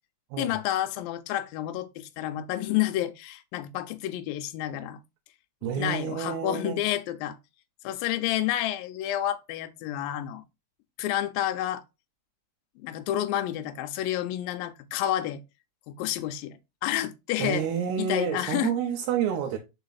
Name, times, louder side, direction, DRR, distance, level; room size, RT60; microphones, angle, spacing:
voice 1, 0.4-5.0 5.8-7.4 7.8-10.4 11.0-11.8 12.8-15.4 15.9-17.7 18.0-18.7, left 13 dB, 80° left, 2.1 m, -30 dB
voice 2, 5.6-6.8 17.4-19.6, right 8 dB, 85° right, 2.9 m, -29 dB
5.7 x 4.7 x 4.0 m
omnidirectional pair, 4.6 m